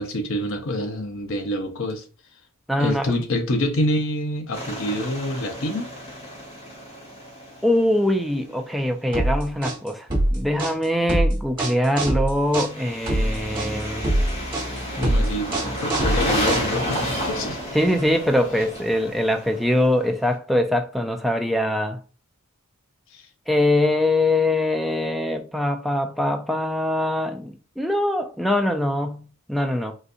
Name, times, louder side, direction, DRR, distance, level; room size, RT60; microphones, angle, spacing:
voice 1, 0.0-2.0 2.8-5.9 15.0-17.6 23.1-23.3, left 1 dB, 60° left, 0.7 m, -26 dB
voice 2, 2.7-3.1 7.6-14.2 15.0-15.3 17.7-22.0 23.5-29.9, left 1 dB, ahead, 0.3 m, -23 dB
sound 1, 4.5-8.4 12.5-20.2, equal, 30° left, 1.1 m, -31 dB
sound 2, 9.1-17.0, right 1 dB, 25° right, 1.4 m, -23 dB
4.0 x 2.5 x 2.5 m
head